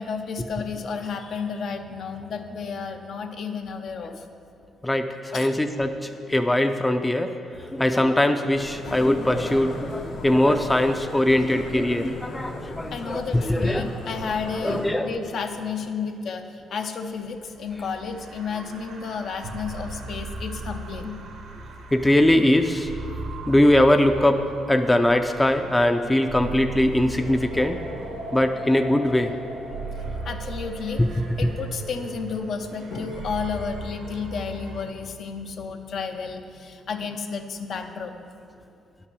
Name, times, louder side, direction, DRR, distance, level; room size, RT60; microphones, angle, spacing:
voice 1, 0.0-4.2 5.3-5.5 12.9-21.2 30.2-31.1 31.4-38.2, left 5 dB, 65° left, 5 dB, 0.7 m, -32 dB
voice 2, 4.8-7.3 7.6-13.9 14.6-15.1 18.5-18.6 21.9-22.9 23.5-27.8 28.3-29.3 31.0-31.5, left 1 dB, 10° left, 7 dB, 0.5 m, -21 dB
sound 1, 8.5-14.9, left 2 dB, 85° left, 1.5 m, -37 dB
sound 2, 17.2-34.9, right 2 dB, 80° right, 1.3 m, -37 dB
10.0 x 5.7 x 6.8 m, 2.5 s
cardioid pair, 90°, 0 cm